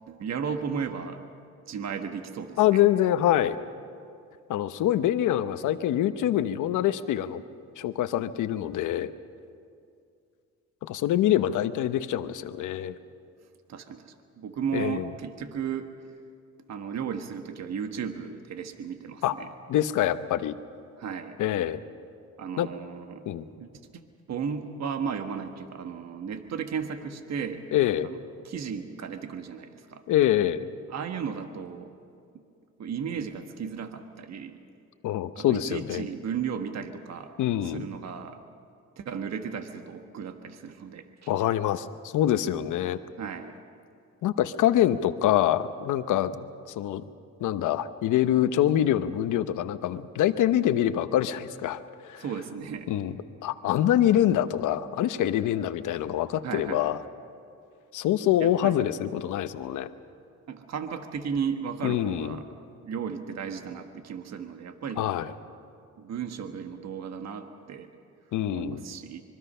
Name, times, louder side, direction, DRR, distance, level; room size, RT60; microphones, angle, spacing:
voice 1, 0.1-1.2 1.7-2.8 13.7-15.9 16.7-19.5 21.0-21.4 22.4-23.3 23.6-24.0 24.3-27.6 28.0-28.2 28.4-30.0 30.9-31.9 32.8-34.6 35.3-37.3 37.6-38.4 39.0-41.3 43.2-43.5 52.2-52.9 56.4-56.9 58.4-58.8 60.5-62.4 62.8-65.1 66.0-67.9 68.5-69.2, right 7 dB, 60° right, 6 dB, 1.5 m, -35 dB
voice 2, 2.6-3.6 4.5-7.4 7.8-9.1 10.8-12.9 14.7-15.1 19.2-19.4 19.7-20.6 21.4-21.8 22.6-22.7 23.3-23.5 27.7-28.1 30.1-30.7 35.0-36.1 37.4-37.9 41.3-43.0 44.2-47.1 47.4-52.2 52.9-53.2 53.4-57.0 57.9-59.9 61.8-62.4 65.0-65.3 68.3-68.8, left 12 dB, 80° left, 11 dB, 0.9 m, -25 dB
25.0 x 23.0 x 5.6 m, 2.4 s
cardioid pair, 90°, 30 cm